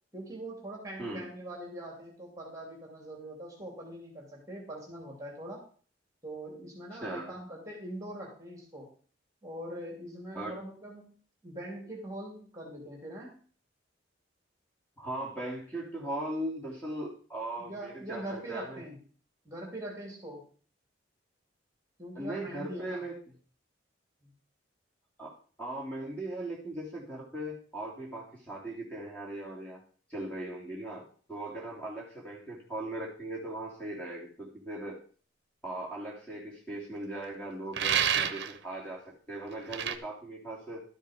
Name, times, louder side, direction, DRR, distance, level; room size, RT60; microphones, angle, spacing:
voice 1, 0.1-5.6 6.2-8.9 9.4-11.1 11.4-13.3 17.6-19.0 19.4-20.5 22.0-23.0 24.2-24.3, right 1 dB, 15° right, 0 dB, 2.9 m, -42 dB
voice 2, 7.0-7.3 10.3-10.6 15.0-18.8 22.1-23.2 25.2-29.8 30.1-35.0 35.6-40.8, right 1 dB, 5° left, -3 dB, 3.1 m, -39 dB
sound 1, 37.7-38.6 39.7-40.0, right 8 dB, 60° right, 0.9 m, -28 dB
12.5 x 7.2 x 5.1 m, 0.43 s
head